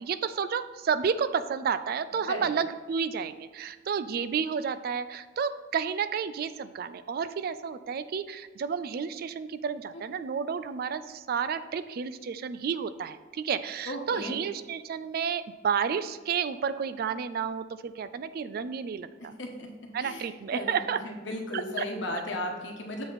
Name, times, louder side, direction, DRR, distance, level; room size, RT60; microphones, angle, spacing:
voice 1, 0.0-19.3 19.9-21.0 21.5-21.9, right 6 dB, 55° right, 13 dB, 0.3 m, -31 dB
voice 2, 13.9-14.4 19.4-19.7 20.0-23.1, left 1 dB, 90° left, 2 dB, 1.1 m, -35 dB
7.3 x 4.3 x 4.0 m, 1.4 s
head